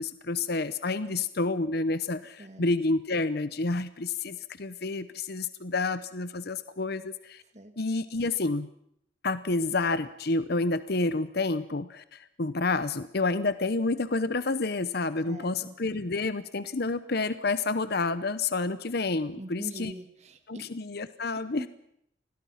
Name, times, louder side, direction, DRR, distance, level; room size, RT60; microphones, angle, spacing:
voice 1, 0.0-7.4 7.8-8.7 9.2-19.9 20.5-21.7, left 3 dB, 55° left, 13 dB, 0.8 m, -29 dB
voice 2, 15.2-15.7 19.4-20.7 21.6-21.7, right 1 dB, 35° right, 7 dB, 2.2 m, -42 dB
28.5 x 21.5 x 5.8 m, 0.74 s
head